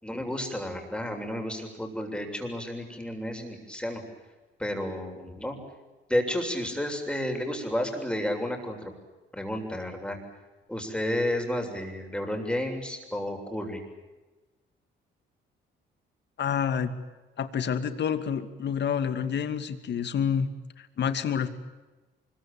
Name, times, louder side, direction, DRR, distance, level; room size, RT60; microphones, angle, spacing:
voice 1, 0.0-4.0 4.6-5.6 6.1-8.9 9.3-10.2 10.7-13.8, left 1 dB, 5° left, 3 dB, 7.5 m, -31 dB
voice 2, 16.4-16.9 17.4-20.5 20.8-21.5, left 7 dB, 60° left, 10 dB, 2.5 m, -28 dB
25.0 x 23.0 x 9.0 m, 1.2 s
cardioid pair, 90°, 20 cm